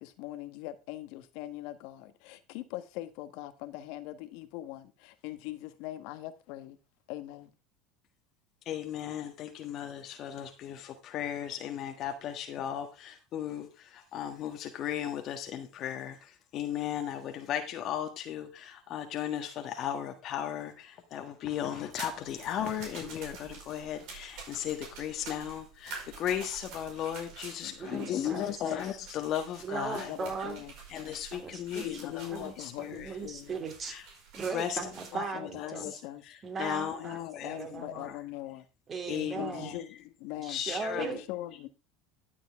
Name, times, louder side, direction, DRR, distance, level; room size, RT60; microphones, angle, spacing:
voice 1, 0.0-6.8 7.1-7.5 27.6-28.1 28.3-28.6 30.1-30.7 31.8-33.5 35.1-36.2 37.0-38.7 39.4-40.6 41.0-41.7, left 15 dB, 65° left, 1.3 m, -41 dB
voice 2, 8.6-30.1 30.9-32.7 33.0-33.1 33.9-34.0 34.5-34.8 35.1-35.2 35.6-35.7 36.6-37.0 37.3-37.6 37.9-38.2 39.1-39.8 40.5-41.2, left 10 dB, 50° left, 1.4 m, -36 dB
sound 1, 21.9-35.1, right 4 dB, 65° right, 5.1 m, -48 dB
voice 3, 27.8-28.5 29.6-30.6 31.3-32.0 32.3-32.5 32.9-34.0 34.3-36.0 36.4-38.1 38.9-39.7 40.4-41.2, right 5 dB, 30° right, 3.0 m, -38 dB
12.5 x 7.2 x 3.6 m
hypercardioid pair, 95°, 0 cm